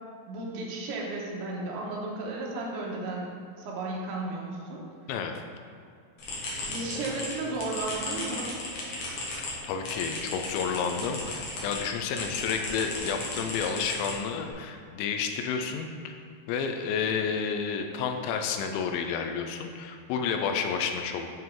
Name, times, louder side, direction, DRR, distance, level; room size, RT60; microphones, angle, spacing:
voice 1, 0.3-3.3 3.6-4.8 6.7-8.5, right 2 dB, 85° right, -2 dB, 3.3 m, -34 dB
sound 1, 6.2-11.8 12.1-14.5, left 2 dB, 65° left, 2.2 m, -36 dB
voice 2, 9.4-16.1 16.5-21.3, left 6 dB, 85° left, 5 dB, 2.7 m, -30 dB
10.5 x 3.8 x 3.7 m, 2.3 s
omnidirectional pair, 5.3 m